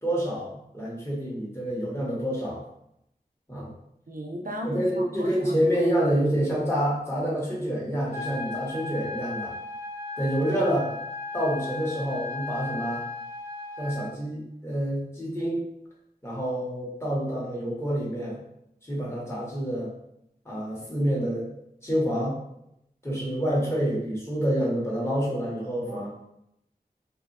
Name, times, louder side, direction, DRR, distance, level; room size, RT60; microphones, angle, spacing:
voice 1, 0.0-2.6 3.5-3.7 4.6-9.5 10.2-10.8 11.3-13.0 13.8-15.6 16.2-18.4 18.8-19.9 20.4-21.5 21.8-22.4 23.0-26.1, equal, 15° left, -6 dB, 1.2 m, -27 dB
voice 2, 4.1-5.5 25.9-26.3, equal, 60° right, 1 dB, 0.5 m, -36 dB
sound 1, 8.1-14.1, left 3 dB, 45° left, 1.3 m, -36 dB
2.7 x 2.6 x 2.6 m, 0.77 s
wide cardioid pair, 40°, 17 cm